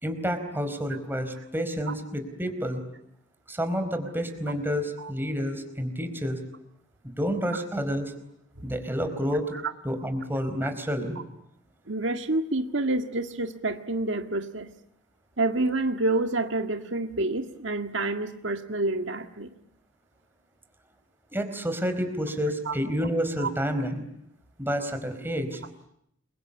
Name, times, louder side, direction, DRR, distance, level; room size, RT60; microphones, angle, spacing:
voice 1, 0.0-2.8 3.5-6.4 7.2-8.1 8.6-9.5 9.8-11.2 21.3-24.0 24.6-25.6, equal, 10° right, 7 dB, 4.4 m, -29 dB
voice 2, 11.9-14.7 15.4-19.5 22.7-22.8 23.4-23.5, right 2 dB, 65° right, 6 dB, 1.9 m, -28 dB
29.5 x 24.0 x 8.4 m, 0.75 s
head